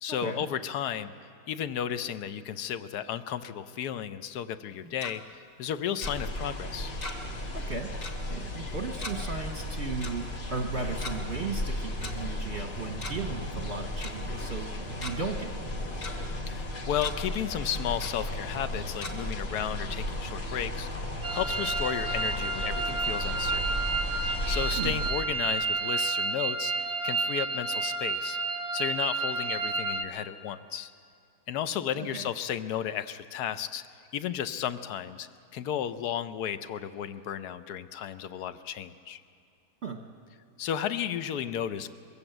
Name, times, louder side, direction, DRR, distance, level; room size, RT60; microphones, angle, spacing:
voice 1, 0.0-1.1 1.5-6.9 16.5-23.8 24.5-28.4 28.7-30.9 31.5-33.9 34.1-39.2 40.6-41.9, left 9 dB, 70° left, 12 dB, 0.9 m, -33 dB
Tick-tock, 4.7-5.1 6.0-6.1 7.0-7.4 7.6-7.7 8.0-8.2 9.0-9.1 10.0-10.1 10.9-11.1 12.0-12.1 12.8-13.3 13.6-13.7 14.0-14.1 14.7-15.1 15.6-16.1 16.6-16.7 17.0-17.1 18.0-18.1 19.0-19.1, left 2 dB, 40° left, 1.8 m, -39 dB
sound 1, 6.0-25.1, left 1 dB, 55° left, 2.7 m, -35 dB
voice 2, 7.5-8.0 8.3-16.0 24.8-24.9 32.0-32.3 39.8-40.0, right 4 dB, 45° right, 4 dB, 1.0 m, -36 dB
sound 2, 21.2-30.0, right 3 dB, 75° right, 0.6 m, -30 dB
22.5 x 16.0 x 7.9 m, 2.6 s
omnidirectional pair, 2.3 m